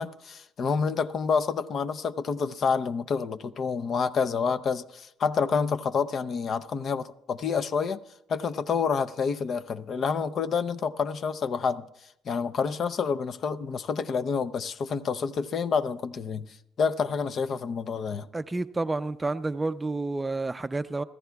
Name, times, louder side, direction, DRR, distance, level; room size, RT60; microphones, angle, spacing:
voice 1, 0.0-8.0 8.3-11.9 12.3-18.3, left 5 dB, 50° left, 0.6 m, -28 dB
voice 2, 18.3-21.0, right 3 dB, 15° right, 0.5 m, -30 dB
25.0 x 15.0 x 2.3 m
cardioid pair, 105°, 0 cm